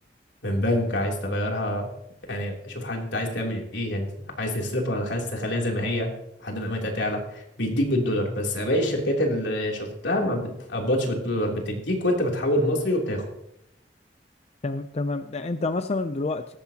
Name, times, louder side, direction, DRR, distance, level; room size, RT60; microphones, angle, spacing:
voice 1, 0.4-1.9 2.3-6.1 6.4-13.2, left 1 dB, 80° left, 0 dB, 3.2 m, -26 dB
voice 2, 14.6-16.6, left 3 dB, 35° left, 9 dB, 0.5 m, -28 dB
17.5 x 14.5 x 2.9 m, 0.78 s
head